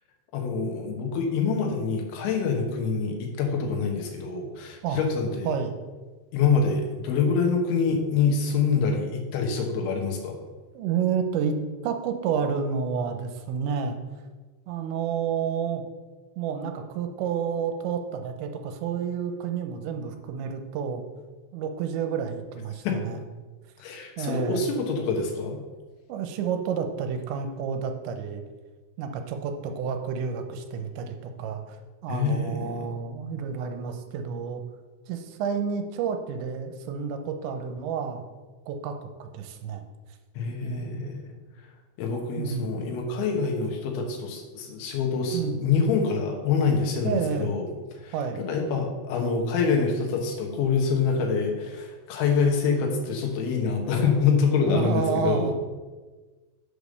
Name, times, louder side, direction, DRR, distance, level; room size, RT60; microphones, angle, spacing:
voice 1, 0.3-5.5 6.3-10.4 22.8-23.0 23.8-25.6 32.1-32.9 40.4-41.3 42.0-47.6 48.0-55.5, left 5 dB, 90° left, 1 dB, 3.7 m, -26 dB
voice 2, 10.7-14.0 14.7-15.8 16.4-21.1 21.5-23.2 24.2-24.7 26.1-28.4 29.0-34.6 35.1-38.2 38.7-39.8 40.6-41.0 42.4-42.7 45.3-45.6 47.0-47.5 48.1-48.4 54.7-55.5, right 6 dB, 80° right, 6 dB, 3.0 m, -30 dB
8.1 x 5.2 x 6.5 m, 1.3 s
omnidirectional pair, 5.2 m